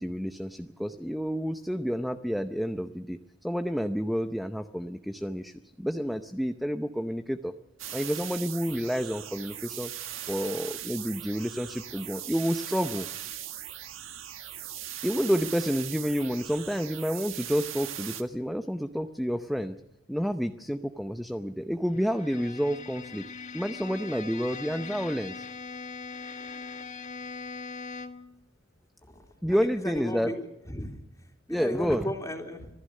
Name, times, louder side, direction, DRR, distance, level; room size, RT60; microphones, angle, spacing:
voice 1, 0.0-7.5 7.9-9.9 10.3-13.1 15.0-19.8 20.1-23.2 23.5-25.5 29.4-30.3 31.5-32.1, equal, ahead, 8 dB, 0.6 m, -29 dB
sound 1, 7.8-18.2, right 11 dB, 70° right, 1.6 m, -39 dB
Bowed string instrument, 21.9-28.4, left 4 dB, 40° left, 1.3 m, -41 dB
voice 2, 29.6-30.9 31.5-32.7, left 1 dB, 15° left, 3 dB, 3.2 m, -35 dB
26.0 x 16.5 x 6.5 m, 0.92 s
head